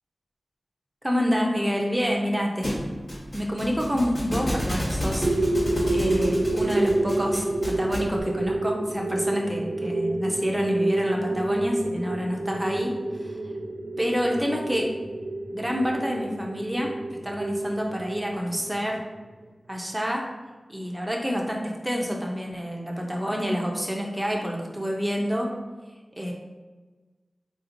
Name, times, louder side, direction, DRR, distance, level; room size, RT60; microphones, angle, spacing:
voice 1, 1.0-2.8 3.3-5.3 5.9-12.9 13.2-13.4 14.0-14.9 15.5-16.9 17.2-19.0 19.7-20.2 20.7-25.5 26.2-26.3, equal, 10° right, -1 dB, 0.5 m, -28 dB
Thump thud, 2.6-8.2, equal, 60° left, 1.1 m, -31 dB
sound 1, 5.2-19.4, right 2 dB, 70° right, 0.4 m, -28 dB
3.6 x 2.8 x 2.6 m, 1.3 s
wide cardioid pair, 65°, 0 cm